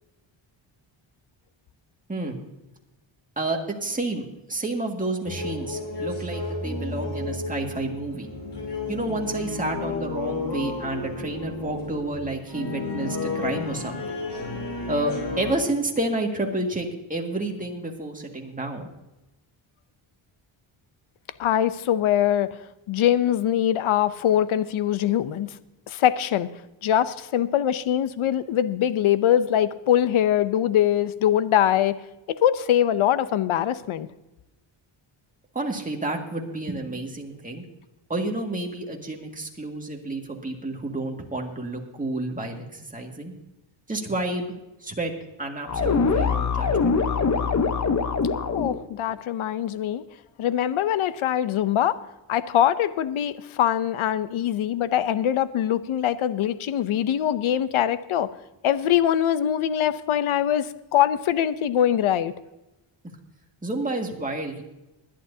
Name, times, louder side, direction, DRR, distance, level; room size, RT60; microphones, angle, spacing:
voice 1, 2.1-2.4 3.4-8.3 8.9-14.0 14.9-18.9 35.5-37.6 38.1-43.3 43.9-44.5 44.8-45.1 45.4-46.9 63.6-64.6, right 2 dB, 15° right, 1 dB, 2.0 m, -30 dB
sound 1, 5.2-15.5, left 3 dB, 55° left, 3.5 m, -32 dB
voice 2, 21.4-22.6 22.9-25.6 25.9-26.5 26.8-32.0 32.4-34.1 48.5-50.0 50.4-52.0 52.3-58.3 58.6-62.3, left 10 dB, 75° left, 14 dB, 0.7 m, -23 dB
sound 2, 45.7-48.8, left 5 dB, 35° left, 1.0 m, -23 dB
20.5 x 11.5 x 2.7 m, 0.98 s
wide cardioid pair, 120°, 49 cm